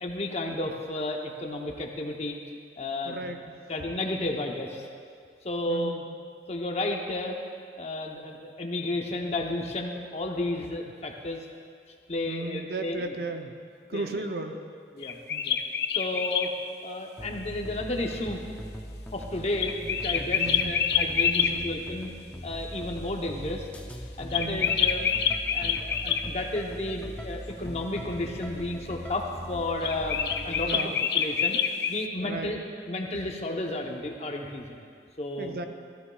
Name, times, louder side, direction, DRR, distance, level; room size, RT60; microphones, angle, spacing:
voice 1, 0.0-2.4 2.8-3.2 3.7-4.8 5.4-5.9 6.5-11.4 12.1-13.1 13.9-14.1 14.9-15.2 15.4-15.6 16.0-16.5 16.8-18.5 19.1-22.1 22.4-23.6 24.2-25.1 25.5-31.6 31.9-32.6 32.9-34.8 35.2-35.6, left 2 dB, 35° left, 1 dB, 0.8 m, -32 dB
voice 2, 3.0-3.5 5.7-6.0 12.3-13.6 13.9-14.6 15.3-15.5 20.4-20.7 21.4-21.7 24.3-24.7 30.6-31.0 32.2-32.6 35.4-35.7, right 2 dB, 55° right, 6 dB, 0.6 m, -35 dB
sound 1, 15.0-16.5 19.6-21.5 24.3-26.2 29.8-32.0, left 8 dB, 65° left, 0.5 m, -26 dB
sound 2, 17.2-30.7, equal, 5° left, 0.5 m, -40 dB
13.5 x 13.0 x 2.3 m, 2.2 s
head